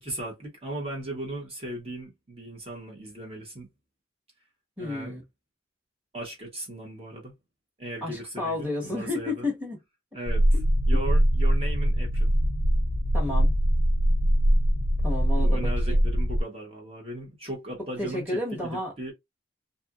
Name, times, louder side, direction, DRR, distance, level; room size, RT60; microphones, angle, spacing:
voice 1, 0.0-3.7 4.8-5.1 6.1-7.3 7.8-9.5 10.1-10.4 10.9-12.3 15.4-19.1, right 1 dB, 30° right, 0.9 m, -37 dB
voice 2, 4.8-5.2 8.0-9.8 10.5-10.6 13.1-13.5 15.0-16.0 18.0-18.9, left 2 dB, 10° right, 1.2 m, -31 dB
sound 1, 10.3-16.4, equal, 40° left, 0.4 m, -22 dB
2.7 x 2.5 x 2.4 m
head